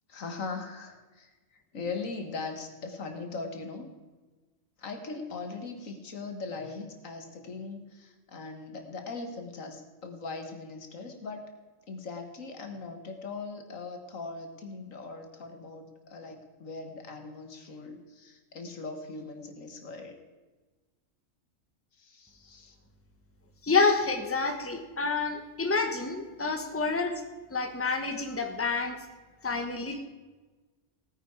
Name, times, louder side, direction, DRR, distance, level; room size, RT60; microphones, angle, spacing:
voice 1, 0.1-3.9 4.8-11.5 11.9-20.2 22.0-22.8, left 4 dB, 80° left, 5 dB, 1.9 m, -40 dB
voice 2, 23.6-27.2 27.5-29.0 29.4-30.0, left 4 dB, 10° left, 5 dB, 1.1 m, -28 dB
17.0 x 9.4 x 4.8 m, 1.3 s
omnidirectional pair, 1.4 m